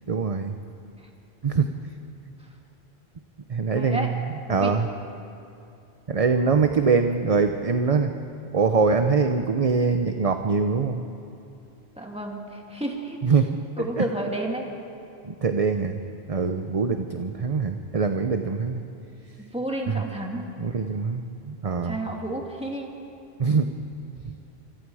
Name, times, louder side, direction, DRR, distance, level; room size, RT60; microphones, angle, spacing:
voice 1, 0.1-0.6 1.4-1.7 3.5-4.1 4.5-4.9 6.1-8.1 8.5-11.1 13.2-13.6 14.0-14.1 15.2-16.0 16.3-18.8 19.9-20.0 20.6-22.0 23.4-23.7 24.2-24.3, right 5 dB, 40° right, 6 dB, 0.8 m, -23 dB
voice 2, 3.7-4.1 4.5-4.8 12.0-13.2 13.8-14.7 19.4-20.5 21.8-22.9, right 1 dB, 5° right, -1 dB, 2.7 m, -31 dB
26.0 x 25.5 x 4.9 m, 2.7 s
omnidirectional pair, 1.1 m